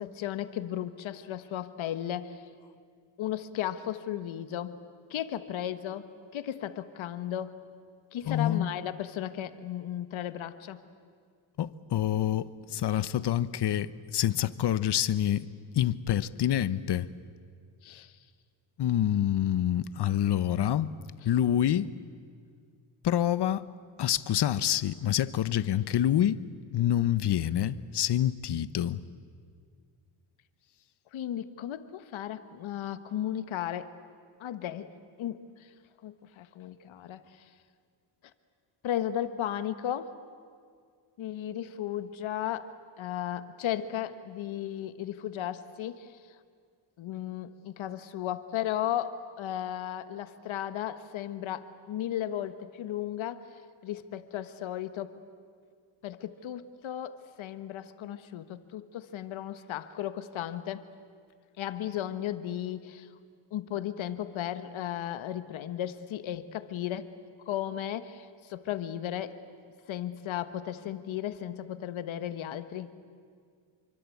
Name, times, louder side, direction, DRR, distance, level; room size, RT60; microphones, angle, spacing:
voice 1, 0.0-2.4 3.2-4.8 5.1-7.5 8.1-10.8 17.8-18.1 31.1-33.9 34.4-34.9 35.2-35.4 36.0-37.2 38.8-40.1 41.2-42.7 43.0-46.1 47.0-53.4 53.8-55.1 56.0-60.9 61.6-63.1 63.5-67.1 67.5-69.4 69.9-72.9, left 11 dB, 80° left, 1.5 m, -35 dB
voice 2, 8.3-8.7 11.6-15.5 15.7-17.1 18.8-20.9 21.2-21.9 23.0-23.6 24.0-26.4 26.7-29.0, left 11 dB, 60° left, 1.0 m, -27 dB
27.5 x 24.0 x 8.5 m
cardioid pair, 110°, 47 cm